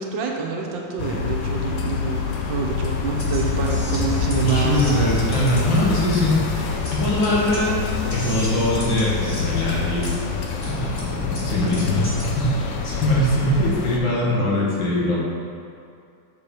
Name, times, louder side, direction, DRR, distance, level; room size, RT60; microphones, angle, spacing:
voice 1, 0.0-5.2 5.8-6.0, right 5 dB, 80° right, 0 dB, 1.6 m, -27 dB
sound 1, 1.0-14.0, left 5 dB, 65° left, 0.9 m, -27 dB
sound 2, 3.1-12.2, equal, 20° left, 1.3 m, -33 dB
voice 2, 4.3-6.7 6.9-10.1 10.5-15.2, left 1 dB, 80° left, -6 dB, 2.3 m, -22 dB
6.9 x 4.9 x 4.4 m, 2.5 s
omnidirectional pair, 2.1 m